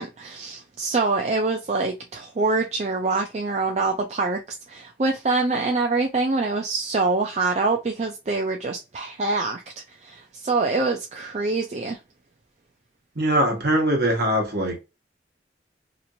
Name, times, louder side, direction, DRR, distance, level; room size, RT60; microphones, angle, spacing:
voice 1, 0.0-12.0, right 3 dB, 40° right, 0.4 m, -25 dB
voice 2, 13.1-14.8, right 1 dB, 55° right, 1.1 m, -22 dB
2.9 x 2.5 x 2.6 m
head